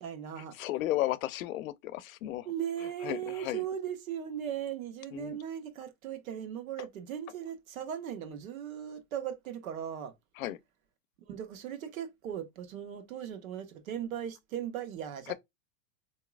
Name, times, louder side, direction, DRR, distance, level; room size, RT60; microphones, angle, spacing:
voice 1, 0.0-0.6 2.4-10.1 11.2-15.3, right 9 dB, 90° right, 1.1 m, -38 dB
voice 2, 0.6-2.5 3.0-3.6 5.1-5.4 10.4-10.6 15.3-15.4, left 15 dB, 85° left, 0.6 m, -34 dB
4.0 x 2.8 x 2.3 m
supercardioid pair, 165°, 40 cm